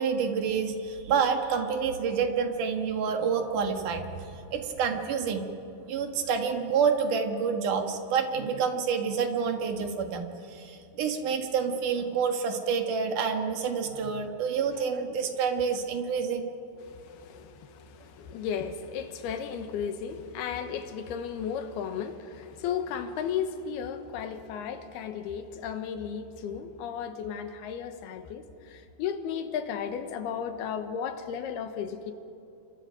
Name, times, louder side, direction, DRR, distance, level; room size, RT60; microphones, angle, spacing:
voice 1, 0.0-5.5 5.9-16.5, right 6 dB, 60° right, 2.9 m, -28 dB
voice 2, 16.8-32.1, left 7 dB, 80° left, 3.2 m, -34 dB
29.0 x 24.5 x 5.2 m
omnidirectional pair, 4.5 m